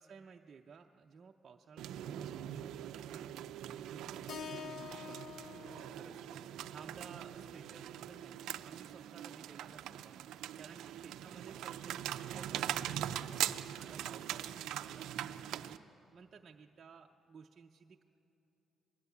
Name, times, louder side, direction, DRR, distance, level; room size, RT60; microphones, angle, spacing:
voice 1, 0.0-13.4 13.8-18.0, right 5 dB, 45° right, 2 dB, 0.6 m, -56 dB
sound 1, 1.8-15.8, right 11 dB, 85° right, 0.5 m, -42 dB
Keyboard (musical), 4.3-8.5, left 7 dB, 60° left, 0.5 m, -50 dB
21.0 x 16.5 x 8.4 m, 2.9 s
cardioid pair, 90°, 0 cm